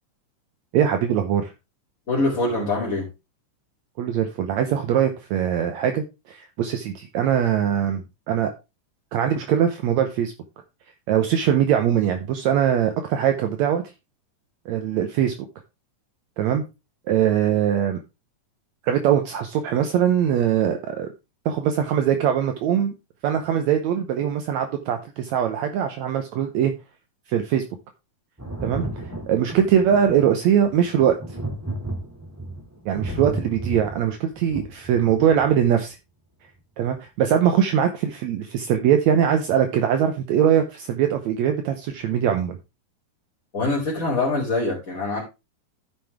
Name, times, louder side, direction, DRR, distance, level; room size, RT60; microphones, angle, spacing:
voice 1, 0.7-1.5 4.0-8.0 8.3-8.5 9.1-10.3 11.1-13.8 14.7-15.4 16.4-16.6 17.1-18.0 18.8-21.1 21.5-22.9 23.2-26.7 27.3-27.6 28.6-28.9 29.3-31.2 32.9-36.0 36.8-42.6, right 9 dB, 75° right, 6 dB, 2.0 m, -21 dB
voice 2, 2.1-3.1 43.5-45.2, left 2 dB, 25° left, -6 dB, 3.2 m, -24 dB
Thunder, 28.4-35.7 36.9-37.0, right 1 dB, 5° right, 1.8 m, -33 dB
13.0 x 5.4 x 3.4 m, 0.26 s
omnidirectional pair, 3.5 m